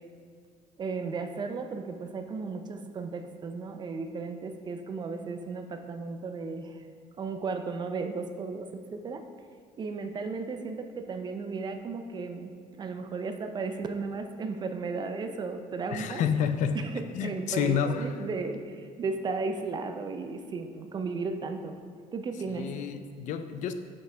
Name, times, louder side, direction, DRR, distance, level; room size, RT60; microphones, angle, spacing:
voice 1, 0.8-6.8 7.2-9.2 9.8-16.2 16.7-21.8 22.1-22.7, right 4 dB, 30° right, 6 dB, 0.5 m, -35 dB
voice 2, 15.9-16.8 17.1-18.1 22.5-23.7, left 7 dB, 60° left, 9 dB, 0.4 m, -29 dB
7.1 x 5.3 x 3.3 m, 2.1 s
cardioid pair, 135°, 14 cm